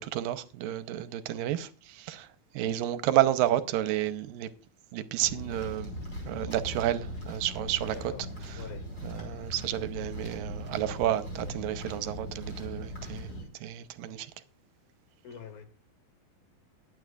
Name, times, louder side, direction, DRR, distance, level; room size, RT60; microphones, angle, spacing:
voice 1, 0.0-2.3 2.5-4.5 4.9-6.0 6.3-8.1 8.4-8.7 9.0-13.3 13.6-14.3, right 12 dB, 80° right, 2.4 m, -31 dB
sound 1, 5.2-13.4, equal, 25° left, 5.2 m, -39 dB
voice 2, 7.9-8.2 8.6-8.8 9.3-9.5 15.2-15.6, left 7 dB, 80° left, 3.9 m, -45 dB
21.5 x 9.3 x 2.4 m
omnidirectional pair, 4.2 m